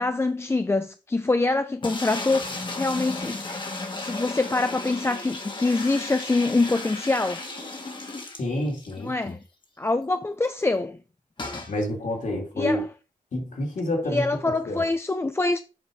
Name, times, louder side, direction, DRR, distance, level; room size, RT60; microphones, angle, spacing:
voice 1, 0.0-3.6 4.0-7.4 9.0-9.4 9.8-11.0 12.6-12.9 14.1-15.6, left 2 dB, 15° left, 0.4 m, -25 dB
sound 1, 1.8-9.0 9.3-9.4 9.6-9.7 11.4-11.7, left 2 dB, 35° left, 1.6 m, -34 dB
voice 2, 8.4-9.3 11.7-12.8 13.3-14.8, left 1 dB, 60° left, 2.9 m, -29 dB
7.9 x 4.7 x 4.7 m
wide cardioid pair, 115°, 14 cm